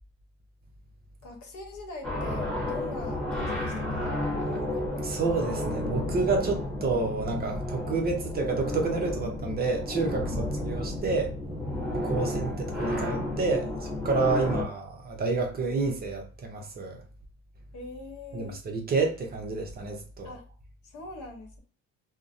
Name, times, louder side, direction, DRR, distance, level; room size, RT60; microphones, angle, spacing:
voice 1, 1.2-4.2 10.3-11.0 12.2-12.4 14.4-14.6 17.7-18.5 20.2-20.4 20.8-21.6, left 2 dB, 60° left, 0.9 m, -42 dB
sound 1, 2.0-14.6, left 1 dB, 5° left, 0.9 m, -32 dB
voice 2, 5.0-10.4 10.6-11.3 11.9-12.5 12.8-17.0 18.3-20.3, right 4 dB, 30° right, 0.5 m, -29 dB
2.5 x 2.0 x 2.5 m
cardioid pair, 120°, 33 cm